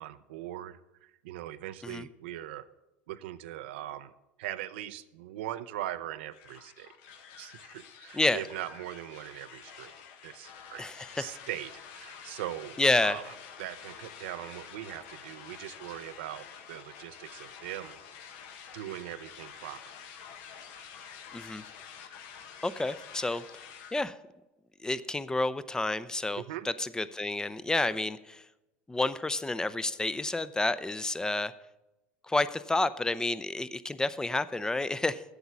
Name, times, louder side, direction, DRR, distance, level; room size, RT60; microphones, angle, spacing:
voice 1, 0.0-2.7 3.1-4.1 4.4-6.9 7.4-9.9 10.2-13.3 13.6-18.0 18.7-19.8 26.4-26.7, right 13 dB, 80° right, 13 dB, 0.5 m, -40 dB
sound 1, 6.3-24.0, left 7 dB, 70° left, 1.2 m, -48 dB
voice 2, 10.8-11.2 12.8-13.2 21.3-21.6 22.6-23.4 23.9-24.1 24.8-28.4 28.9-31.5 32.3-35.2, left 2 dB, 10° left, 16 dB, 0.5 m, -30 dB
8.0 x 6.9 x 7.4 m, 0.97 s
hypercardioid pair, 85°, 6 cm